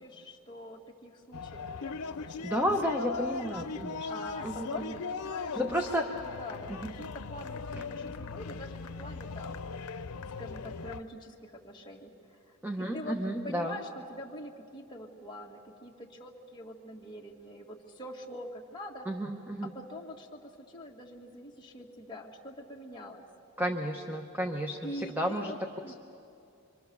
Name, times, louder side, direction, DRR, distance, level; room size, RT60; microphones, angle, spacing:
voice 1, 0.0-3.3 4.1-9.7 10.4-13.2 13.4-19.1 19.6-23.3 24.8-25.9, left 1 dB, 20° left, -2 dB, 2.1 m, -45 dB
sound 1, 1.3-11.0, left 4 dB, 90° left, 0.7 m, -39 dB
voice 2, 2.4-4.1 4.4-4.9 5.5-6.1 6.8-6.9 7.7-7.9 12.6-13.8 19.1-19.7 23.6-25.9, equal, 10° right, 3 dB, 0.9 m, -32 dB
26.0 x 25.0 x 7.1 m, 2.5 s
head